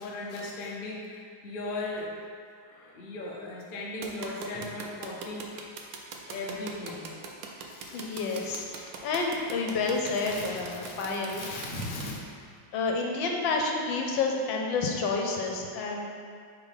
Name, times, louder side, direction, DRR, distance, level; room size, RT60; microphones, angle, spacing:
voice 1, 0.0-2.1 2.9-5.5 6.3-7.1 7.7-9.0 9.9-12.2, left 2 dB, 50° left, -3 dB, 0.6 m, -38 dB
sound 1, 4.0-12.0, right 5 dB, 85° right, 1.4 m, -40 dB
voice 2, 7.9-11.4 12.7-16.0, left 4 dB, 80° left, 1 dB, 1.4 m, -29 dB
5.3 x 3.8 x 4.9 m, 2.2 s
omnidirectional pair, 2.1 m